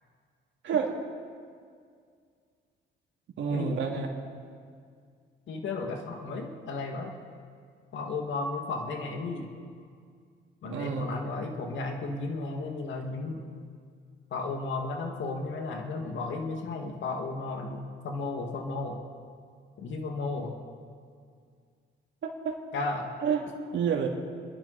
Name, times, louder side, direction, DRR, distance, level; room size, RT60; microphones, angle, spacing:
voice 1, 3.4-4.1 10.6-11.0 22.2-22.5 23.2-23.4 23.7-24.1, right 6 dB, 70° right, 1 dB, 2.7 m, -28 dB
voice 2, 5.5-7.1 7.9-9.5 10.6-13.4 14.3-19.0 19.8-20.6 22.7-23.1, left 3 dB, 70° left, 3 dB, 2.2 m, -34 dB
29.5 x 11.0 x 4.3 m, 2.1 s
cardioid pair, 90°, 20 cm